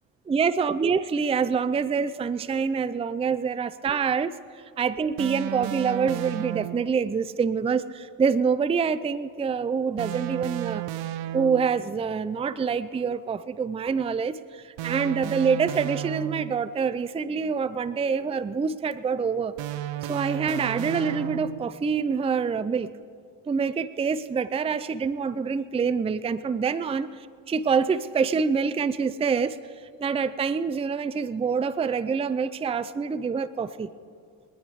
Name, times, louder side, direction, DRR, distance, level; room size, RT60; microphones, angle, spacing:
voice 1, 0.3-4.3 4.8-10.9 11.3-19.5 20.1-22.9 23.5-27.1 27.5-29.6 30.0-33.9, right 5 dB, 15° right, 14 dB, 0.4 m, -26 dB
sound 1, 5.2-7.0 10.0-11.9 14.8-16.7 19.6-21.8, right 14 dB, 75° right, 0.8 m, -33 dB
24.0 x 9.5 x 4.8 m, 2.1 s
supercardioid pair, 75°, 46 cm